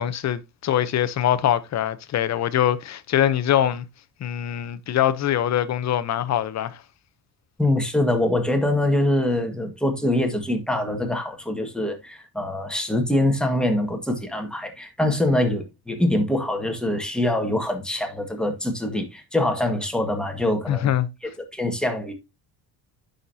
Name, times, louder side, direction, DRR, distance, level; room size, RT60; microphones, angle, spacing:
voice 1, 0.0-3.8 4.2-6.8 20.7-21.1, left 11 dB, 45° left, 0.8 m, -23 dB
voice 2, 7.6-20.9 21.2-22.1, left 1 dB, ahead, 1.7 m, -24 dB
9.7 x 6.5 x 2.8 m
cardioid pair, 130°, 38 cm